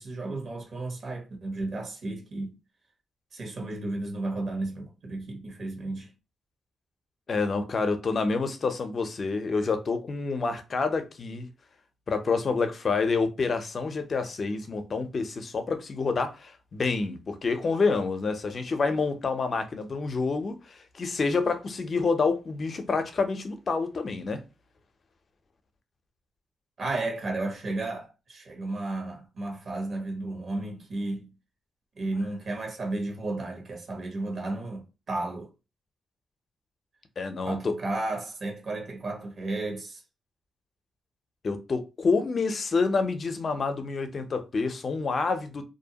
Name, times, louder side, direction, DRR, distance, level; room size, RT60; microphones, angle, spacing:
voice 1, 0.0-2.5 3.3-6.1 26.8-31.3 31.9-35.5 37.4-40.0, right 2 dB, 60° right, 1.2 m, -33 dB
voice 2, 7.3-11.5 12.1-24.4 37.2-37.8 41.4-45.6, left 4 dB, 50° left, 0.6 m, -28 dB
2.6 x 2.1 x 2.8 m
cardioid pair, 60°, 0 cm